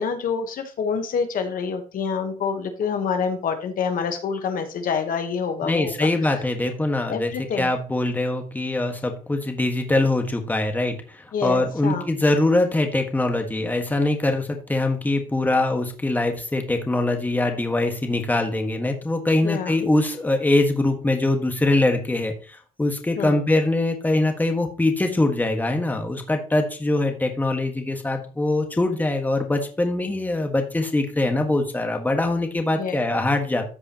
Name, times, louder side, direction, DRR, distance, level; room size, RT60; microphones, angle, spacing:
voice 1, 0.0-6.1 7.1-7.7 11.3-12.0 19.4-19.8 23.2-23.4 32.8-33.0, left 6 dB, 55° left, 6 dB, 1.2 m, -27 dB
voice 2, 5.6-33.6, left 2 dB, 10° left, 4 dB, 1.5 m, -23 dB
14.0 x 4.9 x 2.9 m, 0.37 s
cardioid pair, 110°, 17 cm